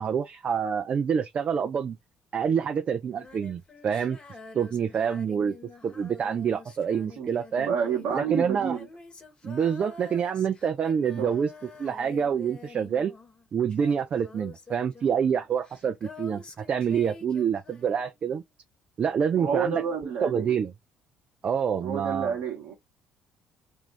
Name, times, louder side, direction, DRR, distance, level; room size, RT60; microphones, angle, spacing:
voice 1, 0.0-2.0 2.3-4.2 4.5-5.6 5.8-7.7 8.1-8.8 9.4-11.5 11.8-13.1 13.5-18.4 19.0-19.8 20.2-20.7 21.4-22.4, right 7 dB, 45° right, 0.5 m, -27 dB
Female singing, 3.1-18.5 20.0-20.1, left 3 dB, 35° left, 1.1 m, -47 dB
voice 2, 7.2-8.9 11.2-11.3 19.4-20.6 21.8-22.7, right 7 dB, 65° right, 1.0 m, -30 dB
2.6 x 2.3 x 3.3 m
hypercardioid pair, 55°, 3 cm